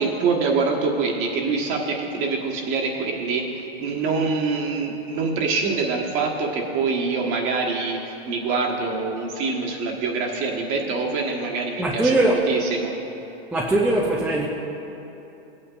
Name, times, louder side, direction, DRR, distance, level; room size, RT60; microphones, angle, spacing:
voice 1, 0.0-12.9, right 4 dB, 40° right, 0 dB, 1.4 m, -25 dB
voice 2, 11.8-12.4 13.5-14.5, right 2 dB, 5° right, -3 dB, 0.4 m, -20 dB
16.5 x 8.7 x 2.5 m, 2.9 s
hypercardioid pair, 135°, 31 cm